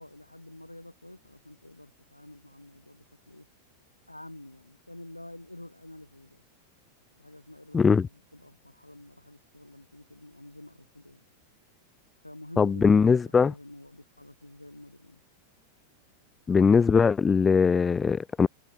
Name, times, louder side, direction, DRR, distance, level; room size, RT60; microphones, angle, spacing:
voice 1, 0.0-3.5 4.1-6.4 7.2-11.2 12.2-15.2, left 1 dB, 85° left, 5.0 m, -48 dB
voice 2, 7.7-8.1 12.6-13.5 16.5-18.5, left 5 dB, 15° left, 0.5 m, -21 dB
figure-of-eight pair, 90°, 0 cm